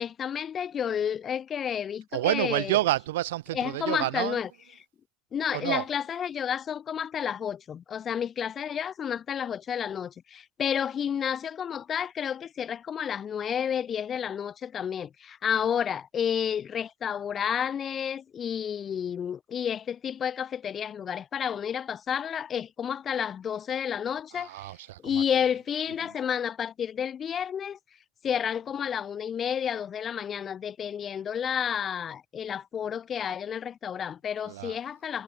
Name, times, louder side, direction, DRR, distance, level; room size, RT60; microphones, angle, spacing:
voice 1, 0.0-2.7 3.5-4.5 5.3-24.5 25.0-27.8 28.2-35.2, left 8 dB, 35° left, 5.3 m, -31 dB
voice 2, 2.1-4.4 5.5-5.9 24.3-25.2 26.0-26.2 34.4-34.8, right 16 dB, 70° right, 5.3 m, -29 dB
hypercardioid pair, 75°, 0 cm